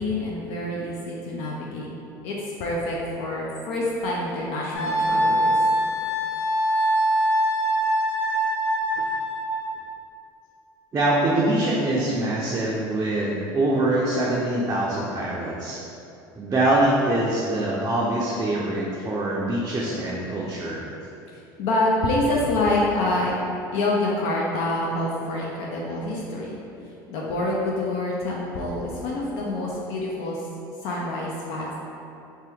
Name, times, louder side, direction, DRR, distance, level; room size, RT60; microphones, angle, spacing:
voice 1, 0.0-1.9 2.2-5.6 21.6-23.3 23.7-26.6 27.1-30.4 30.8-31.8, left 2 dB, 65° left, -4 dB, 0.5 m, -26 dB
Wind instrument woodwind instrument, 4.7-9.6, right 1 dB, 20° left, 1.1 m, -23 dB
voice 2, 10.9-15.8 16.4-20.9, right 1 dB, 25° right, -5 dB, 0.4 m, -24 dB
2.7 x 2.2 x 3.5 m, 2.7 s
supercardioid pair, 85°, 11 cm